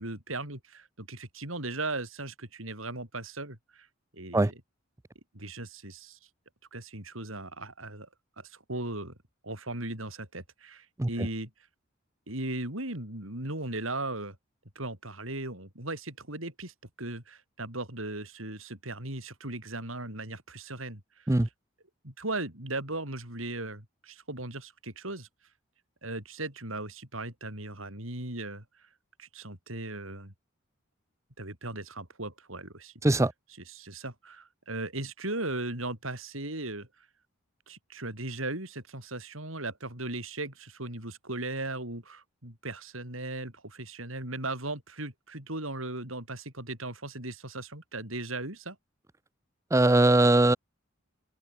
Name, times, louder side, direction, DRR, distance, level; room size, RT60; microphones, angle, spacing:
voice 1, 0.0-3.9 4.1-4.6 5.3-6.2 6.7-8.1 8.4-9.2 9.4-11.5 12.3-14.4 14.8-21.3 22.0-25.3 26.0-28.6 29.2-30.3 31.4-32.9 33.7-37.1 37.7-48.8, right 2 dB, 80° right, 7.3 m, -37 dB
voice 2, 49.7-50.6, right 2 dB, 15° right, 0.5 m, -21 dB
open air
head